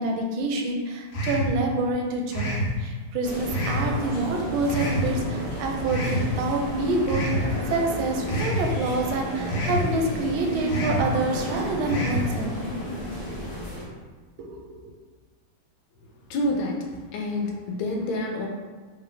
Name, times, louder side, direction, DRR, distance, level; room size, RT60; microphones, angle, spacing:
voice 1, 0.0-12.5 14.4-14.8, right 3 dB, 75° right, 2 dB, 1.3 m, -27 dB
sound 1, 1.1-1.5 2.3-2.7 3.5-3.9 4.7-5.1 5.9-6.2 7.1-7.4 8.3-8.6 9.5-9.8 10.7-11.0 11.9-12.2, equal, 60° left, 1.0 m, -27 dB
sound 2, 3.2-13.8, equal, 15° left, 1.0 m, -33 dB
voice 2, 16.3-18.5, left 1 dB, 80° left, 0 dB, 1.4 m, -28 dB
3.3 x 3.2 x 3.7 m, 1.4 s
omnidirectional pair, 2.4 m